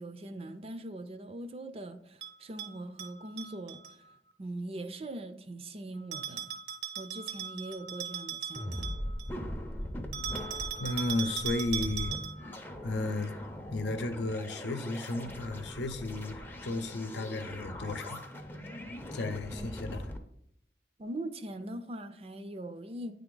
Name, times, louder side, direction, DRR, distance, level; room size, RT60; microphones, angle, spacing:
voice 1, 0.0-4.0 4.4-6.5 7.0-8.9 19.5-19.7 21.0-23.1, right 1 dB, 35° right, 0.4 m, -41 dB
Bell, 2.2-3.9 6.1-9.4 10.1-12.5, right 8 dB, 80° right, 0.9 m, -39 dB
sound 1, 8.6-20.2, left 1 dB, 10° left, 0.5 m, -41 dB
voice 2, 10.8-12.1 12.8-13.3 13.7-18.2 19.1-20.1, left 2 dB, 85° left, 0.7 m, -34 dB
9.3 x 3.5 x 3.8 m
head